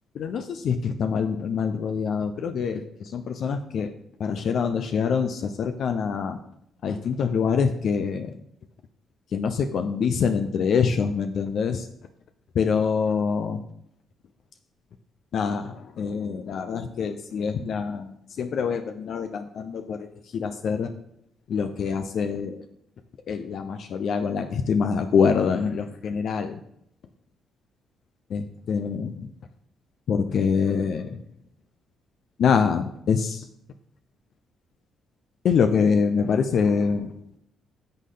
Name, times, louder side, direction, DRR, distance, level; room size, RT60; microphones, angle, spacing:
voice 1, 0.2-2.8 3.1-3.9 4.2-6.4 6.8-8.3 9.3-11.8 12.6-13.6 15.3-18.1 18.4-20.0 20.3-20.9 21.5-22.6 23.3-26.6 28.3-29.1 30.1-31.1 32.4-33.4 35.4-37.1, left 6 dB, 65° left, 7 dB, 0.7 m, -25 dB
10.5 x 6.5 x 3.9 m, 0.71 s
cardioid pair, 90°, 0 cm